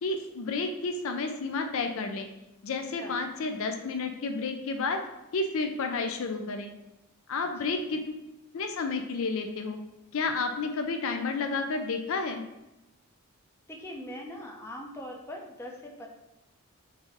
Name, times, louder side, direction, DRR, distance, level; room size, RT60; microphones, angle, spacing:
voice 1, 0.0-2.3 2.6-5.0 5.3-6.7 7.3-8.3 8.5-9.8 10.1-12.4, left 3 dB, 65° left, 5 dB, 0.4 m, -31 dB
voice 2, 7.6-8.0 13.7-16.1, left 1 dB, 10° left, 0 dB, 0.5 m, -42 dB
4.1 x 2.5 x 4.6 m, 0.96 s
head